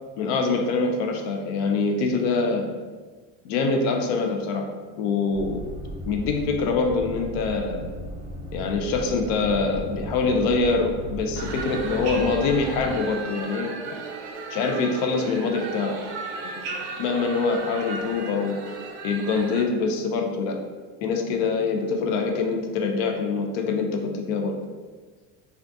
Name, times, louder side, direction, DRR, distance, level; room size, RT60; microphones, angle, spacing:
voice 1, 0.2-2.7 3.4-4.7 5.0-5.6 6.1-7.8 8.5-13.7 14.5-16.0 16.4-16.7 17.0-18.6 19.0-20.6 21.0-24.6, left 4 dB, 70° left, 4 dB, 0.5 m, -24 dB
sound 1, 5.3-12.9, equal, 35° right, 0.8 m, -36 dB
sound 2, 11.4-19.6, right 4 dB, 65° right, 0.5 m, -35 dB
2.6 x 2.5 x 3.4 m, 1.4 s
cardioid pair, 170°, 36 cm